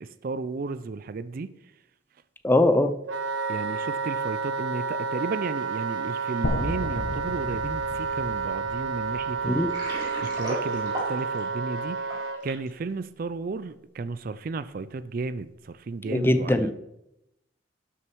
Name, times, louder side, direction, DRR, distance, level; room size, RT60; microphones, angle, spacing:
voice 1, 0.0-1.6 3.5-9.7 10.2-16.7, right 4 dB, 50° right, 14 dB, 0.4 m, -34 dB
voice 2, 2.4-2.9 9.4-9.7 16.0-16.7, left 1 dB, 10° left, 9 dB, 0.5 m, -21 dB
Wind instrument woodwind instrument, 3.1-12.4, right 5 dB, 90° right, 0.7 m, -30 dB
sound 1, 6.4-10.5, left 1 dB, 80° left, 1.1 m, -34 dB
Water, 9.5-12.7, equal, 20° right, 4.0 m, -36 dB
11.5 x 6.5 x 4.6 m, 0.87 s
head